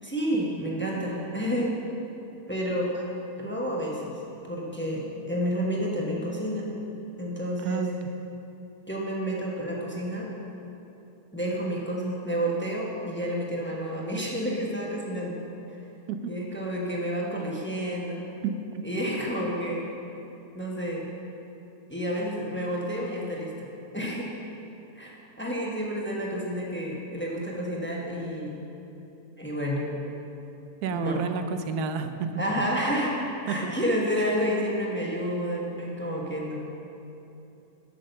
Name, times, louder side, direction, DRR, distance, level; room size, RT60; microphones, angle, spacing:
voice 1, 0.0-1.7 2.5-3.0 3.4-4.2 4.5-6.7 7.2-7.9 8.9-10.3 11.3-15.4 16.3-18.3 18.8-19.9 20.5-21.1 21.9-23.7 23.9-24.3 25.0-28.6 29.4-29.8 30.9-31.3 32.4-33.1 33.5-36.6, equal, 10° left, -3 dB, 1.0 m, -30 dB
voice 2, 7.6-7.9 30.8-32.6 33.5-33.7, right 5 dB, 90° right, 8 dB, 1.2 m, -31 dB
8.7 x 6.5 x 6.6 m, 2.8 s
omnidirectional pair, 1.6 m